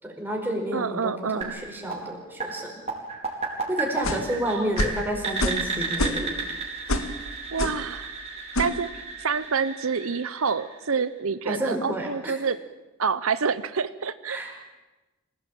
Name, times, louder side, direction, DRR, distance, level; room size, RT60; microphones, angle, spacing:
voice 1, 0.0-2.7 3.7-6.4 11.4-12.4 14.3-14.5, right 1 dB, 10° right, 0 dB, 5.0 m, -30 dB
voice 2, 0.7-1.5 7.5-8.1 8.6-12.6 13.0-14.4, right 5 dB, 80° right, 13 dB, 0.8 m, -27 dB
sound 1, 1.4-11.2, right 4 dB, 30° right, 4.7 m, -34 dB
sound 2, 4.0-4.3 4.8-5.0 5.4-5.7 5.9-6.4 6.9-7.1 7.6-7.8 8.5-8.8, left 1 dB, 80° left, 2.0 m, -26 dB
26.5 x 18.0 x 9.0 m, 1.1 s
head